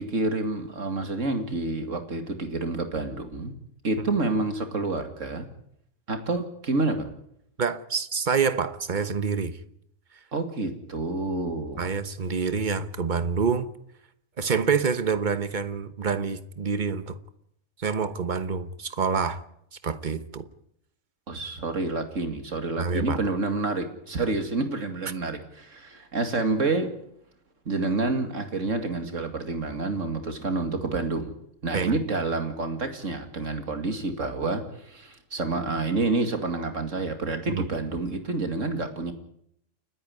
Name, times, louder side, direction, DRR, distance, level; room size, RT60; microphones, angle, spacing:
voice 1, 0.0-3.5 3.8-5.5 6.1-7.1 10.3-11.9 21.3-26.9 27.7-31.3 31.6-39.1, right 3 dB, 70° right, 2.7 m, -28 dB
voice 2, 7.6-9.6 11.8-13.7 14.4-17.2 17.8-19.4 19.8-20.5 22.8-23.2 31.7-31.9 37.5-37.7, right 5 dB, 40° right, 1.2 m, -27 dB
29.5 x 10.0 x 9.8 m
omnidirectional pair, 1.4 m